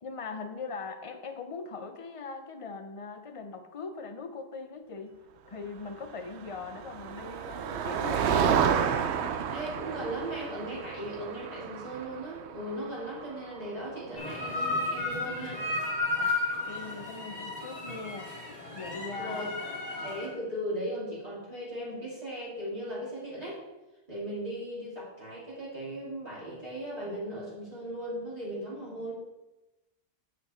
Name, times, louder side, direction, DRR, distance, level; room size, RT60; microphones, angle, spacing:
voice 1, 0.0-5.2 5.5-8.6 16.2-16.3 16.6-18.3 18.7-19.4, left 4 dB, 30° left, 6 dB, 0.7 m, -40 dB
Motor vehicle (road), 6.4-14.2, right 7 dB, 65° right, 0.8 m, -31 dB
voice 2, 9.5-15.6 19.2-23.6 24.1-29.1, right 1 dB, 30° right, -9 dB, 3.1 m, -37 dB
sound 1, 14.2-20.3, left 2 dB, 75° left, 2.8 m, -33 dB
8.4 x 6.3 x 4.4 m, 1.1 s
omnidirectional pair, 1.3 m